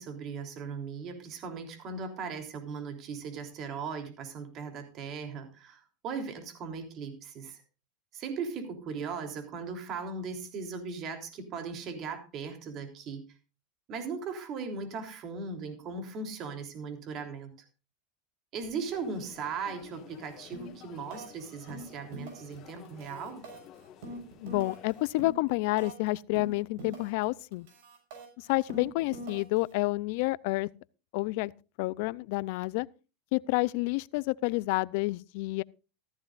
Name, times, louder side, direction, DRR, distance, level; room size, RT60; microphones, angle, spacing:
voice 1, 0.0-7.6 8.1-13.2 13.9-17.5 18.5-23.4, right 5 dB, 40° right, 3.4 m, -38 dB
sound 1, 18.8-25.1, left 10 dB, 45° left, 1.7 m, -53 dB
sound 2, 20.5-20.8 21.1-21.4 21.7-22.6 22.8-26.1 26.3-27.2 27.5-29.7, right 1 dB, 70° right, 6.6 m, -44 dB
voice 2, 24.4-27.7 28.4-30.7 31.1-31.5 31.8-32.9 33.3-35.6, left 21 dB, 65° left, 0.5 m, -29 dB
15.0 x 14.5 x 2.5 m
supercardioid pair, 120°, 0 cm